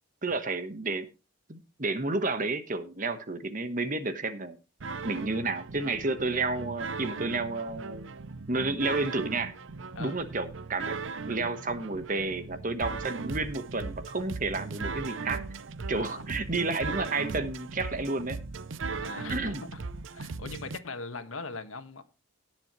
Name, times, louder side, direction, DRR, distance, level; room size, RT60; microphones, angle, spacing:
voice 1, 0.2-1.1 1.5-4.6 5.0-8.1 8.5-9.5 10.0-11.0 11.2-15.4 15.9-18.4 19.3-19.6, right 3 dB, 40° right, 1.2 m, -31 dB
sound 1, 4.8-20.8, right 4 dB, 70° right, 0.6 m, -38 dB
voice 2, 15.9-16.4 18.9-19.8 20.1-22.0, left 3 dB, 85° left, 1.5 m, -40 dB
18.0 x 7.5 x 3.1 m
head